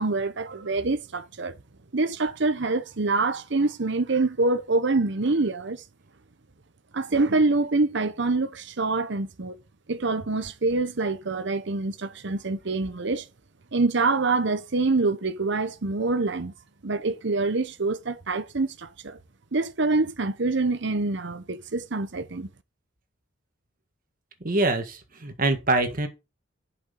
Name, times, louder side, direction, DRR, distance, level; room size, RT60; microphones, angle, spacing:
voice 1, 0.0-1.6 1.9-5.8 6.9-9.6 9.9-13.3 13.7-16.5 16.8-19.2 19.5-22.5, right 3 dB, 60° right, 0.9 m, -25 dB
voice 2, 24.4-26.1, right 2 dB, 45° right, 1.7 m, -24 dB
7.8 x 6.2 x 5.3 m
head